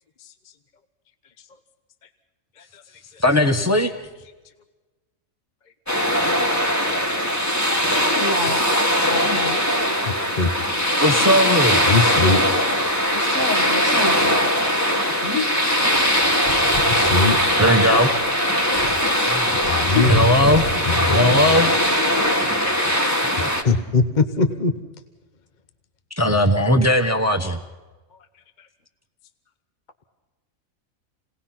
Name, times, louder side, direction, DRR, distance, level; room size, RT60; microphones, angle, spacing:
voice 1, 3.2-3.9 11.0-11.8 17.6-18.1 19.3-19.5 20.1-21.7 23.4-23.5 23.9-24.0 26.2-27.6, left 1 dB, 10° right, 6 dB, 1.0 m, -19 dB
sound 1, 5.9-23.6, equal, 10° left, 1.8 m, -20 dB
voice 2, 8.2-8.7 9.0-9.6 13.1-14.7 15.2-15.5 15.8-15.9 19.9-20.1, left 3 dB, 70° left, 5 dB, 2.3 m, -27 dB
voice 3, 10.0-10.5 11.8-12.4 16.8-17.4 19.6-20.2 20.9-21.4 23.6-24.7, left 3 dB, 35° left, 9 dB, 1.0 m, -21 dB
28.0 x 19.0 x 5.9 m, 1.2 s
omnidirectional pair, 1.4 m